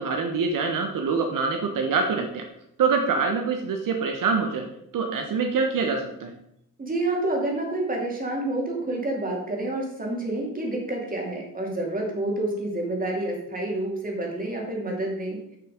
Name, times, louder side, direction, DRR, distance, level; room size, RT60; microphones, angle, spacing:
voice 1, 0.0-2.4 2.8-4.7 4.9-6.3, right 4 dB, 70° right, 3 dB, 1.2 m, -25 dB
voice 2, 6.8-15.4, right 1 dB, 25° right, -1 dB, 2.6 m, -28 dB
10.0 x 5.8 x 5.1 m, 0.77 s
wide cardioid pair, 140°, 34 cm